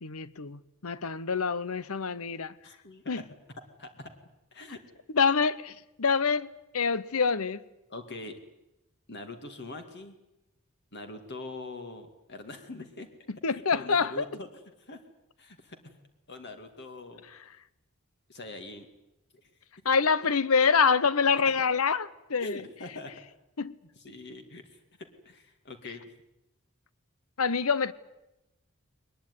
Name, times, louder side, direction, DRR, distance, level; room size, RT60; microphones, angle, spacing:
voice 1, 0.0-2.5 3.1-3.2 5.1-7.6 13.3-14.2 19.8-22.6 23.6-23.7 27.4-27.9, left 5 dB, 85° left, 0.9 m, -26 dB
voice 2, 2.6-3.2 3.8-4.1 4.5-4.8 7.9-8.3 9.1-10.2 10.9-13.1 13.5-14.5 14.8-15.0 15.4-15.8 16.3-17.2 18.3-18.9 19.3-19.5 21.5-21.6 22.4-23.1 24.0-24.8 25.2-26.0, left 2 dB, 55° left, 2.4 m, -43 dB
22.0 x 20.5 x 9.7 m
head